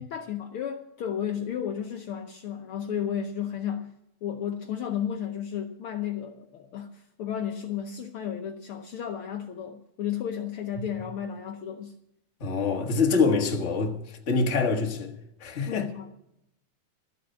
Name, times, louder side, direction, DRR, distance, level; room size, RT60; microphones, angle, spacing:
voice 1, 0.0-3.9 4.2-11.9 15.7-16.1, left 9 dB, 85° left, 1.2 m, -33 dB
voice 2, 12.4-15.1 15.4-15.8, left 4 dB, 35° left, 1.1 m, -25 dB
13.5 x 7.8 x 8.8 m
omnidirectional pair, 3.6 m